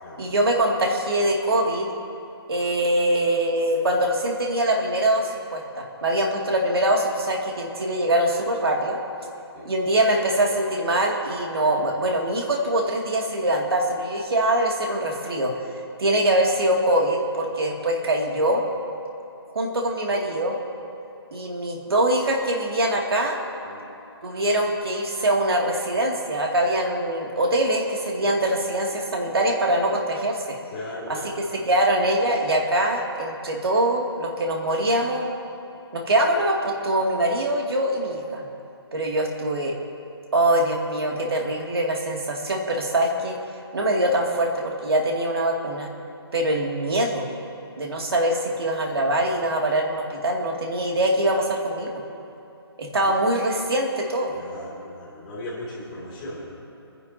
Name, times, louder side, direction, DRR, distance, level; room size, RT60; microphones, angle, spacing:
voice 1, 0.2-2.0 2.5-9.0 9.6-15.5 16.0-18.6 19.5-20.6 21.3-23.4 24.2-30.6 31.7-35.3 35.9-38.4 38.9-39.7 40.3-43.4 43.7-45.9 46.3-47.3 47.8-52.0 52.8-54.3, right 1 dB, 65° right, 0 dB, 2.4 m, -23 dB
voice 2, 30.7-31.4 53.0-53.1 54.3-56.6, left 1 dB, 20° left, -7 dB, 2.8 m, -37 dB
29.0 x 10.5 x 2.8 m, 2.9 s
hypercardioid pair, 175°, 14 cm